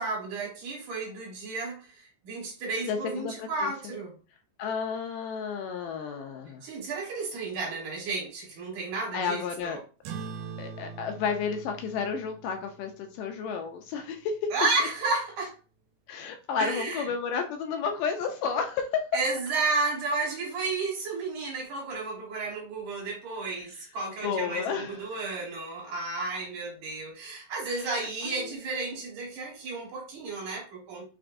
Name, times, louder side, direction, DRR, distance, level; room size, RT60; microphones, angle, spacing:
voice 1, 0.0-4.2 6.6-9.8 14.5-15.6 16.6-17.1 19.1-31.0, right 3 dB, 65° right, 2.6 m, -32 dB
voice 2, 2.8-3.7 4.6-6.6 9.1-9.8 10.6-14.4 16.1-18.9 24.2-25.1 26.2-26.4 27.7-28.6, left 6 dB, 80° left, 2.1 m, -32 dB
sound 1, 10.0-14.9, right 5 dB, 90° right, 2.3 m, -44 dB
5.9 x 2.5 x 2.5 m
omnidirectional pair, 4.0 m